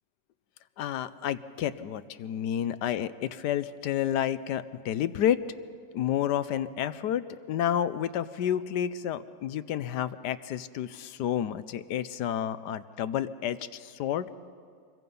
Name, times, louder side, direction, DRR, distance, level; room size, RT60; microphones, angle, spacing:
voice 1, 0.8-5.4 5.9-14.3, left 10 dB, 80° left, 14 dB, 1.3 m, -30 dB
26.0 x 22.0 x 5.4 m, 2.3 s
omnidirectional pair, 1.8 m